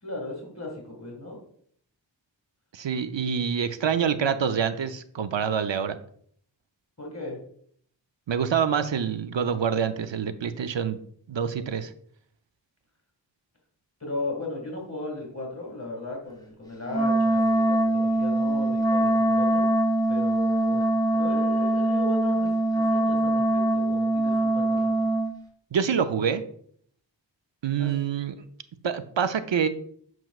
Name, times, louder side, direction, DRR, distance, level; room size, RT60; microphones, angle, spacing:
voice 1, 0.0-1.4 7.0-7.4 14.0-19.7 20.1-20.8 21.1-25.1 27.8-28.0, left 2 dB, 35° left, -1 dB, 2.0 m, -36 dB
voice 2, 2.7-6.0 8.3-11.0 11.3-11.9 25.7-26.4 27.6-28.3 28.8-29.7, right 7 dB, 70° right, 11 dB, 0.6 m, -26 dB
Wind instrument woodwind instrument, 16.9-25.3, right 1 dB, 10° left, 1.6 m, -23 dB
7.8 x 6.0 x 2.3 m, 0.62 s
wide cardioid pair, 45°, 45 cm